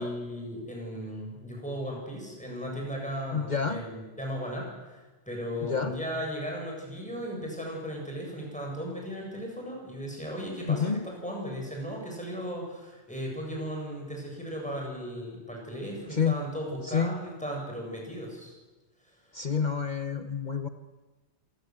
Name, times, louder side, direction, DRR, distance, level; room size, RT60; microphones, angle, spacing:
voice 1, 0.0-18.5, equal, 5° left, -1 dB, 7.9 m, -36 dB
voice 2, 3.3-3.8 5.6-5.9 10.7-11.0 16.1-16.4 16.8-17.2 19.3-20.7, left 6 dB, 45° left, 8 dB, 1.1 m, -28 dB
27.5 x 18.0 x 8.0 m, 1.2 s
omnidirectional pair, 1.1 m